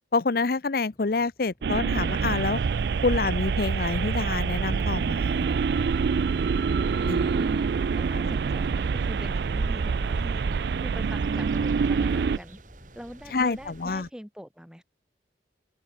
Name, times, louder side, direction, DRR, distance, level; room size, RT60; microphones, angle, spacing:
voice 1, 0.1-2.6 3.0-5.5 7.1-7.3 8.1-8.3 13.3-14.1, left 3 dB, 55° left, 0.7 m, -27 dB
sound 1, 0.9-13.5, equal, 15° left, 5.4 m, -61 dB
sound 2, 1.6-12.4, right 5 dB, 60° right, 0.4 m, -26 dB
sound 3, 1.9-14.1, right 1 dB, 45° right, 3.1 m, -46 dB
voice 2, 7.1-7.7 8.0-10.4 10.8-12.6 12.9-14.8, equal, 5° right, 1.3 m, -43 dB
head